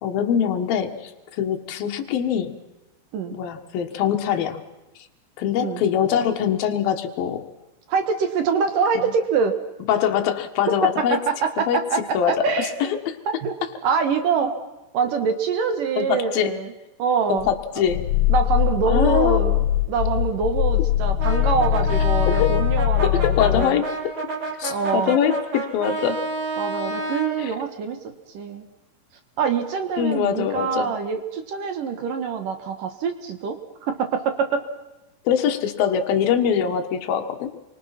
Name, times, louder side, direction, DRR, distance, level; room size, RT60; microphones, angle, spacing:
voice 1, 0.0-2.6 3.3-4.6 5.4-7.5 8.9-9.1 9.9-11.3 11.7-11.8 12.1-13.2 16.0-16.5 17.3-18.1 18.8-19.4 22.3-22.6 23.0-23.9 24.6-26.2 27.4-27.5 30.0-30.9 35.2-37.5, left 8 dB, 60° left, 5 dB, 2.9 m, -23 dB
voice 2, 7.9-9.5 11.0-12.9 13.4-13.6 13.8-14.5 14.9-16.7 17.0-17.5 18.3-23.8 24.7-25.2 26.6-28.0 28.3-28.7 29.4-34.6, right 6 dB, 60° right, 7 dB, 2.5 m, -25 dB
Growling, 17.4-23.7, left 14 dB, 80° left, 3.3 m, -22 dB
Brass instrument, 21.2-27.4, right 3 dB, 40° right, 4.9 m, -30 dB
29.5 x 24.0 x 5.9 m, 1.0 s
omnidirectional pair, 5.4 m